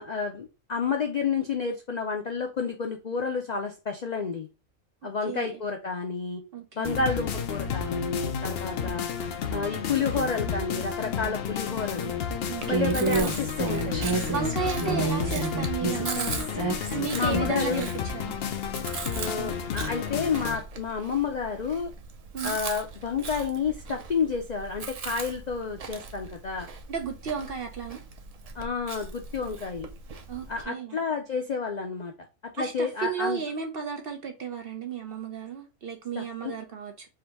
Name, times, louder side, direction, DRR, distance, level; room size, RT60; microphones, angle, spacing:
voice 1, 0.0-4.5 5.0-6.4 6.8-9.1 9.5-12.2 12.7-14.2 14.8-15.1 17.1-17.8 19.1-21.9 22.4-26.7 28.6-29.9 30.5-32.1 32.5-33.4 36.2-36.6, left 5 dB, 75° left, 0.3 m, -30 dB
voice 2, 5.2-5.6 6.5-6.9 8.7-8.9 12.5-12.8 14.3-16.5 16.9-18.4 22.3-22.6 26.9-28.0 30.3-31.0 32.6-37.1, right 6 dB, 55° right, 0.7 m, -33 dB
sound 1, 6.8-20.6, left 7 dB, 55° left, 0.7 m, -31 dB
Chewing mastication, 12.6-30.6, right 4 dB, 80° right, 0.3 m, -40 dB
Human voice, 12.7-17.9, right 4 dB, 15° right, 1.0 m, -30 dB
3.7 x 2.6 x 4.4 m
omnidirectional pair, 1.5 m